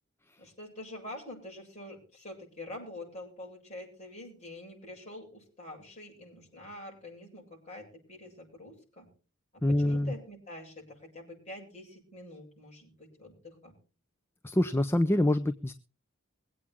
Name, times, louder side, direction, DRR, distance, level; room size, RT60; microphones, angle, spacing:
voice 1, 0.4-9.1 9.7-13.8, left 1 dB, 30° left, 0 dB, 7.8 m, -46 dB
voice 2, 9.6-10.1 14.4-15.7, left 1 dB, 10° left, 11 dB, 0.5 m, -26 dB
22.5 x 8.7 x 3.6 m, 0.38 s
head